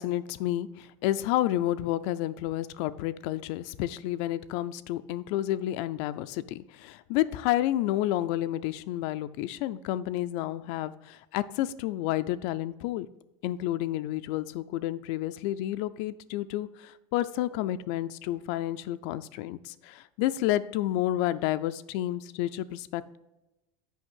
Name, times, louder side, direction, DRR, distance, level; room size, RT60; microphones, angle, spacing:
voice 1, 0.0-13.1 13.4-23.2, left 14 dB, 60° left, 13 dB, 0.4 m, -30 dB
6.4 x 5.2 x 6.1 m, 0.96 s
supercardioid pair, 130°, 16 cm